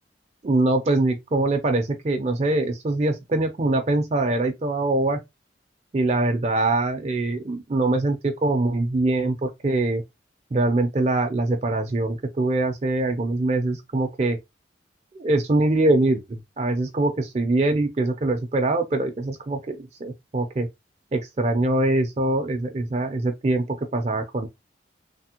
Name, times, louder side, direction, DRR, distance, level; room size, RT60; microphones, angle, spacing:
voice 1, 0.4-5.2 5.9-10.0 10.5-14.4 15.2-20.7 21.1-24.5, right 2 dB, 35° right, 0.4 m, -23 dB
3.3 x 2.0 x 2.8 m
head